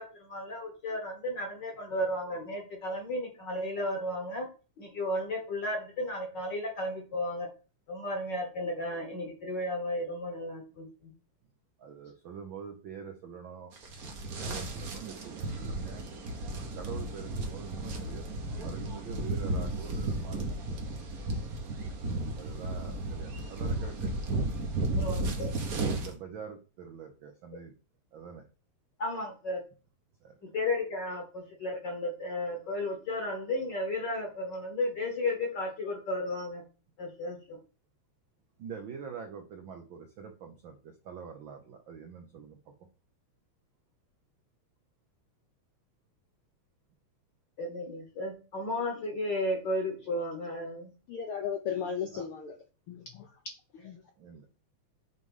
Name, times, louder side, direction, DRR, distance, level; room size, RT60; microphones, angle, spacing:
voice 1, 0.0-4.5 4.8-7.5 7.9-11.1 24.9-25.5 29.0-29.6 30.4-36.6 37.0-37.6 47.6-50.9, left 1 dB, 50° left, 2 dB, 1.4 m, -34 dB
voice 2, 11.8-13.7 14.4-16.0 16.8-20.5 20.8-21.5 22.3-24.1 25.9-27.7 28.1-28.4 30.2-30.6 38.6-42.7 52.1-52.3 54.2-54.5, right 6 dB, 85° right, 4 dB, 1.0 m, -45 dB
sound 1, 13.8-26.1, right 2 dB, 60° right, 0.9 m, -34 dB
voice 3, 51.1-52.6 52.9-53.3 53.8-54.0, left 7 dB, 75° left, 4 dB, 1.2 m, -35 dB
7.3 x 3.2 x 5.4 m, 0.35 s
omnidirectional pair, 3.3 m